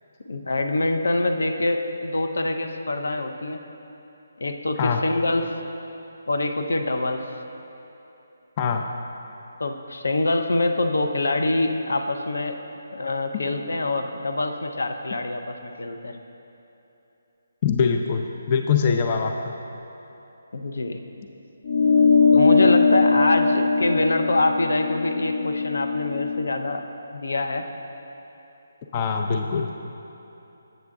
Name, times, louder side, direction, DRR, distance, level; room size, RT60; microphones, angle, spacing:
voice 1, 0.2-3.6 4.4-5.5 6.3-7.2 9.6-12.6 12.9-16.2 20.5-21.0 22.3-26.8 27.1-27.7, left 2 dB, 80° left, 6 dB, 0.5 m, -25 dB
voice 2, 17.6-19.5 28.9-29.7, left 6 dB, 30° left, 3 dB, 0.3 m, -23 dB
sound 1, 21.6-26.4, left 4 dB, 50° left, 1.0 m, -20 dB
7.8 x 6.5 x 3.5 m, 3.0 s
hypercardioid pair, 165°, 0 cm